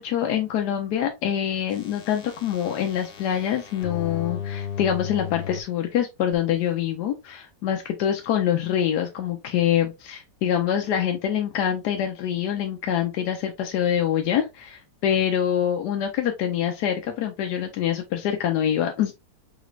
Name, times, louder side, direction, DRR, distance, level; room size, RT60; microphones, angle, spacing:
voice 1, 0.0-19.1, left 9 dB, 85° left, 1.2 m, -25 dB
sound 1, 1.7-5.6 6.3-6.4, left 9 dB, 45° left, 0.8 m, -35 dB
4.9 x 3.1 x 2.3 m
omnidirectional pair, 1.7 m